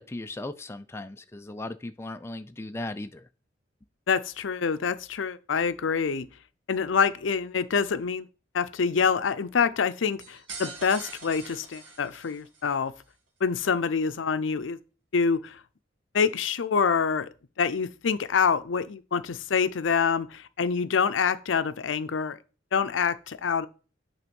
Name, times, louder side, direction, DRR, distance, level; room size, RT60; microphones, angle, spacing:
voice 1, 0.0-3.3, left 2 dB, 15° left, 0.4 m, -37 dB
voice 2, 4.1-6.3 6.7-8.3 8.5-12.9 13.4-14.8 15.1-15.6 16.1-17.3 17.6-22.4 22.7-23.7, left 6 dB, 90° left, 0.5 m, -26 dB
sound 1, 10.2-12.7, right 3 dB, 85° right, 1.8 m, -42 dB
8.5 x 3.6 x 5.2 m
head